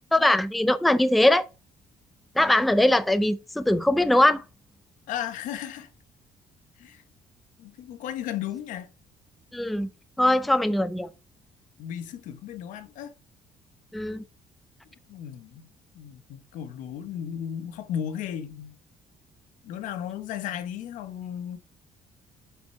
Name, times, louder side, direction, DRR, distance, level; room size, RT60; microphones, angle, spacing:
voice 1, 0.1-1.5 2.4-4.4 9.5-9.9 10.2-11.1 13.9-14.2, left 1 dB, ahead, 0.4 m, -21 dB
voice 2, 5.1-5.9 6.8-7.0 7.6-8.9 11.8-13.1 15.1-15.7 15.9-18.7 19.6-21.6, left 9 dB, 80° left, 1.2 m, -35 dB
7.3 x 5.1 x 5.7 m
cardioid pair, 170°, 13 cm